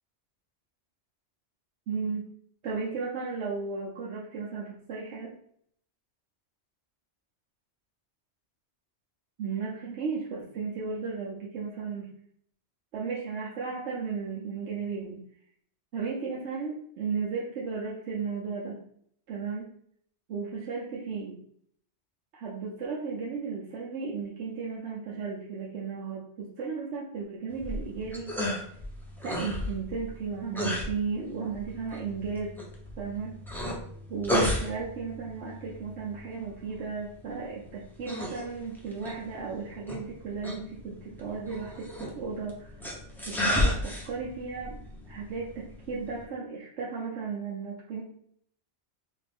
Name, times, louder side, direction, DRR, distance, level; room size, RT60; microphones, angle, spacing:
voice 1, 1.9-2.3 2.6-5.4 9.4-12.1 12.9-15.2 15.9-18.8 19.3-19.7 20.3-21.4 22.3-28.4 29.2-32.5 33.0-33.4 34.1-42.8 43.3-44.8 45.1-48.0, right 5 dB, 85° right, -4 dB, 1.0 m, -35 dB
sound 1, 27.5-46.2, left 1 dB, ahead, 0.6 m, -34 dB
4.3 x 2.5 x 3.4 m, 0.65 s
omnidirectional pair, 1.2 m